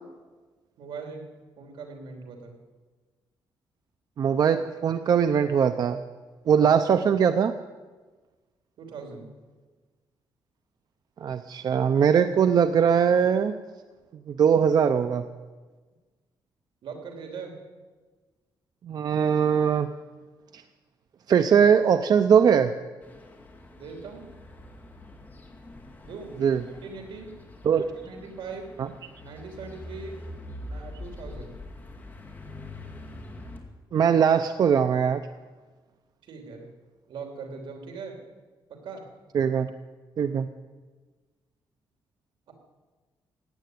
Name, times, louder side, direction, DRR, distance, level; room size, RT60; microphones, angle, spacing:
voice 1, 0.8-1.2 1.6-2.6 6.5-6.7 8.8-9.3 16.8-17.6 23.8-24.3 26.0-26.4 26.8-27.3 27.7-28.7 29.2-30.2 30.7-31.6 36.2-36.7 37.1-38.2 38.7-39.1 42.5-42.6, right 4 dB, 80° right, 3 dB, 3.3 m, -40 dB
voice 2, 4.2-6.0 6.5-7.5 11.2-13.5 14.3-15.2 18.8-19.9 20.5-20.6 21.3-22.7 26.4-26.6 27.7-27.8 28.8-28.9 33.9-35.2 39.3-39.7 40.2-40.5, right 7 dB, 50° right, 9 dB, 0.5 m, -21 dB
sound 1, 23.0-33.6, left 1 dB, 20° left, 2.2 m, -44 dB
16.0 x 9.4 x 9.3 m, 1.4 s
wide cardioid pair, 150°, 8 cm